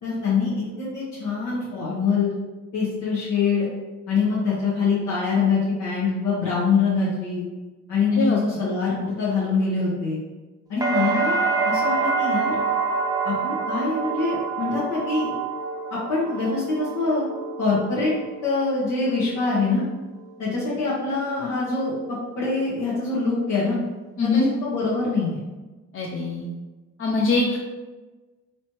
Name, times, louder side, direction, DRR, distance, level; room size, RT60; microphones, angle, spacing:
voice 1, 0.0-2.3 2.7-3.7 4.1-7.4 7.9-10.2 10.7-11.4 11.7-12.5 13.2-15.3 15.9-17.2 17.6-18.1 18.4-19.9 20.4-23.8 24.2-25.4, left 4 dB, 85° left, -8 dB, 1.1 m, -24 dB
sound 1, 10.8-18.7 19.1-19.7, right 4 dB, 10° right, 0.5 m, -26 dB
voice 2, 25.9-26.5 27.0-27.6, left 3 dB, 45° left, -1 dB, 0.5 m, -22 dB
3.2 x 3.0 x 2.9 m, 1.2 s
cardioid pair, 90°, 30 cm